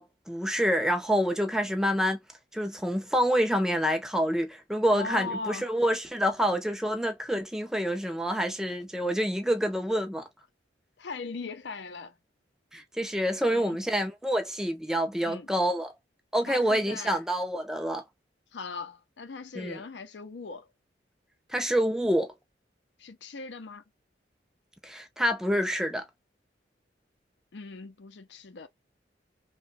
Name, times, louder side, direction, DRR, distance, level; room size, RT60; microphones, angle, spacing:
voice 1, 0.0-2.2 2.5-10.2 12.7-15.9 16.3-18.0 19.5-19.8 21.5-22.3 24.8-26.0, equal, 5° right, 0.4 m, -27 dB
voice 2, 4.9-5.7 11.0-12.2 13.5-13.8 15.2-15.5 16.4-17.2 18.5-20.7 23.0-23.8 27.5-28.7, left 4 dB, 75° left, 0.6 m, -39 dB
2.9 x 2.2 x 2.6 m
head